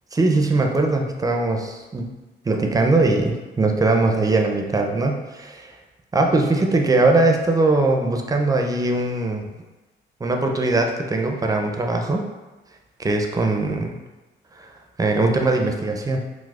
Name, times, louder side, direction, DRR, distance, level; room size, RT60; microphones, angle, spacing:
voice 1, 0.1-2.1 2.4-5.8 6.1-9.5 10.2-12.2 13.0-14.0 14.6-14.7 15.0-16.2, right 2 dB, 20° right, 3 dB, 0.4 m, -21 dB
4.7 x 2.0 x 2.3 m, 1.2 s
cardioid pair, 90°, 20 cm